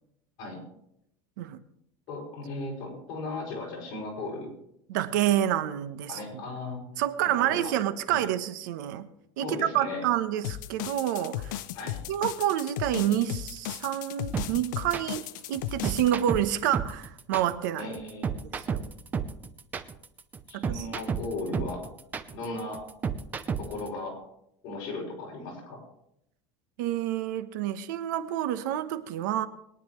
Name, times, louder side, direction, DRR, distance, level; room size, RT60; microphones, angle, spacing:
voice 1, 2.1-4.5 6.1-6.8 7.2-7.7 8.1-8.2 9.4-10.0 11.7-12.0 17.8-18.5 20.5-21.8 22.3-22.9 23.6-24.2 24.6-25.8, left 2 dB, 50° left, 6.1 m, -36 dB
voice 2, 4.9-6.4 7.0-9.1 9.4-11.6 12.1-17.9 18.7-18.8 20.5-20.9 26.8-29.5, right 12 dB, 85° right, 1.0 m, -28 dB
sound 1, 10.4-16.1, left 13 dB, 90° left, 0.7 m, -36 dB
sound 2, 14.3-23.9, right 6 dB, 15° right, 0.6 m, -32 dB
22.0 x 10.5 x 3.2 m
cardioid pair, 165°, 10 cm